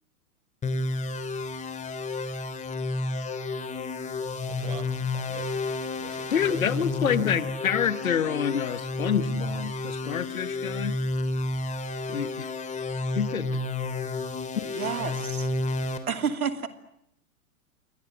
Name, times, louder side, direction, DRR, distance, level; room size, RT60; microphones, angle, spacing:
sound 1, 0.6-16.0, left 2 dB, 15° left, 3.3 m, -31 dB
voice 1, 4.5-5.7 6.0-7.3, right 8 dB, 55° right, 12 dB, 5.3 m, -43 dB
voice 2, 6.3-11.0 12.1-12.5 13.2-13.5, left 8 dB, 70° left, 15 dB, 1.7 m, -27 dB
voice 3, 14.6-15.5 16.1-16.7, right 6 dB, 75° right, 10 dB, 2.8 m, -30 dB
29.0 x 24.5 x 7.9 m, 0.76 s
figure-of-eight pair, 105°, 44 cm